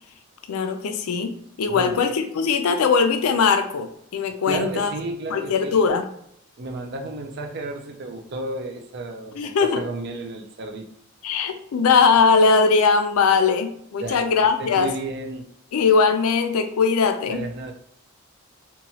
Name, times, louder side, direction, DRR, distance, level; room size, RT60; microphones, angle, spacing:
voice 1, 0.5-4.9 5.3-6.1 9.4-9.8 11.2-14.9 15.7-17.5, left 5 dB, 75° left, 7 dB, 0.4 m, -20 dB
voice 2, 1.7-2.1 4.5-5.8 6.6-10.9 14.0-15.5 17.3-17.7, right 2 dB, 50° right, 4 dB, 0.4 m, -32 dB
2.9 x 2.2 x 2.8 m, 0.71 s
head